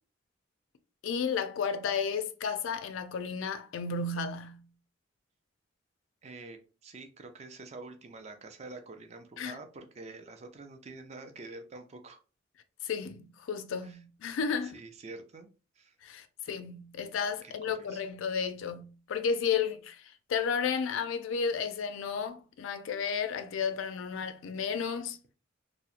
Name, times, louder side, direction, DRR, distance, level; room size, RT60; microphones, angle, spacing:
voice 1, 1.0-4.6 9.4-9.6 12.8-14.7 16.0-20.0 20.3-25.2, left 6 dB, 75° left, 0.3 m, -33 dB
voice 2, 6.2-12.2 13.8-14.0 14.6-15.5 15.8-15.9 17.4-17.5 17.8-18.0, right 3 dB, 35° right, 0.4 m, -47 dB
2.7 x 2.0 x 2.4 m
head